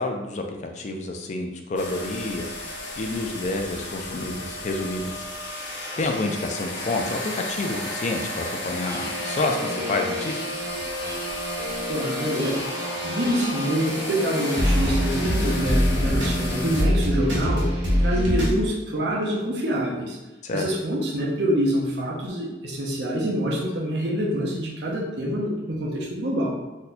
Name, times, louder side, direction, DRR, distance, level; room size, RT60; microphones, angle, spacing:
voice 1, 0.0-2.5 3.0-5.3 6.0-10.6 20.4-20.6, left 2 dB, 40° left, 4 dB, 0.4 m, -29 dB
sound 1, 1.8-16.8, left 1 dB, 80° left, 0.8 m, -33 dB
sound 2, 8.8-18.6, equal, 85° right, 1.0 m, -26 dB
voice 2, 11.9-12.7 13.0-17.7 18.0-20.2 20.5-26.6, equal, 65° right, -2 dB, 0.7 m, -26 dB
2.7 x 2.2 x 4.1 m, 1.1 s
head